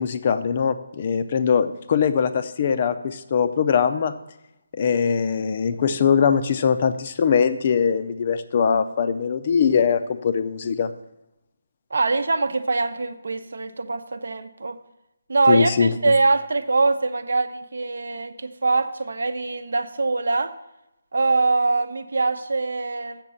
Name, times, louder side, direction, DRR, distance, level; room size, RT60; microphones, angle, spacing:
voice 1, 0.0-4.1 4.8-10.9 15.5-15.9, left 6 dB, 25° left, 10 dB, 0.5 m, -21 dB
voice 2, 11.9-14.8 15.3-20.5 21.1-23.2, right 3 dB, 65° right, 10 dB, 0.8 m, -23 dB
7.4 x 7.4 x 6.9 m, 0.90 s
hypercardioid pair, 180°, 0 cm